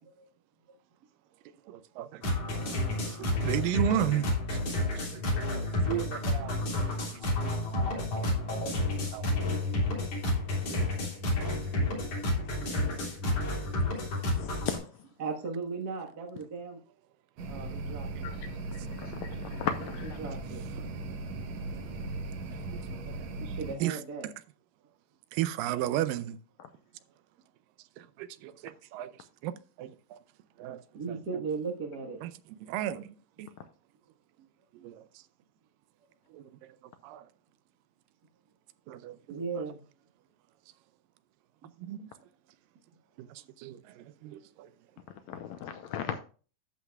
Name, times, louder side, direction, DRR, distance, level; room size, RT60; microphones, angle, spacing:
voice 1, 1.7-2.2 2.5-6.9 7.4-7.5 7.9-8.7 9.1-9.3 10.7-10.9 11.4-11.6 23.0-23.2 23.8-24.3 25.3-26.4 28.0-29.1 29.4-29.5 29.8-30.2 30.6-30.8 31.1-31.5 32.2-32.3 32.6-33.5 34.8-35.0 36.3-36.8 37.0-37.2 38.9-39.7 41.8-42.1 43.2-43.3 43.6-44.7, right 12 dB, 85° right, 2.3 m, -35 dB
sound 1, 2.2-14.8, left 1 dB, 45° left, 4.3 m, -30 dB
voice 2, 15.2-16.8 17.4-18.3 19.7-20.6 23.4-24.3 30.9-32.2 34.4-34.5 34.8-34.9 39.3-39.8 41.6-41.7, right 4 dB, 50° right, 1.2 m, -37 dB
sound 2, 17.4-23.8, right 3 dB, 65° right, 2.1 m, -38 dB
voice 3, 19.0-20.2 45.3-46.2, left 8 dB, 80° left, 1.7 m, -36 dB
12.0 x 8.4 x 2.3 m
omnidirectional pair, 3.9 m